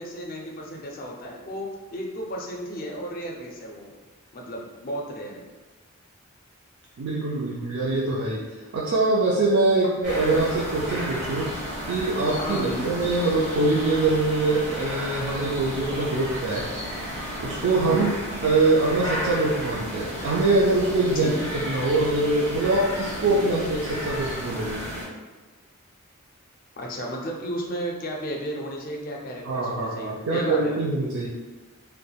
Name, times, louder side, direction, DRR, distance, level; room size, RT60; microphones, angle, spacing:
voice 1, 0.0-3.9 4.3-5.4 12.4-13.0 17.9-18.1 21.1-21.4 26.8-30.8, equal, 40° left, 0 dB, 0.4 m, -33 dB
voice 2, 7.0-11.5 11.9-16.7 17.4-18.1 18.4-24.9 29.4-31.3, right 2 dB, 65° right, -4 dB, 0.4 m, -23 dB
sound 1, 10.0-25.1, equal, 50° right, 1.2 m, -33 dB
3.2 x 2.1 x 2.2 m, 1.2 s
head